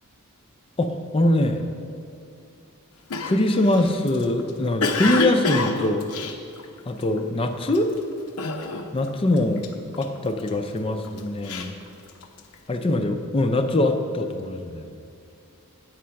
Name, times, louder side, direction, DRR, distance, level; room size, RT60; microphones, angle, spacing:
voice 1, 0.8-1.7 3.2-6.1 6.9-7.9 8.9-9.6 10.0-11.7 12.7-14.9, left 1 dB, 25° left, 6 dB, 0.4 m, -23 dB
Cough, 3.1-7.2 7.7-8.0 8.4-9.1 9.3-10.5 11.0-12.5, left 3 dB, 85° left, 0.7 m, -28 dB
8.6 x 6.3 x 5.7 m, 2.4 s
head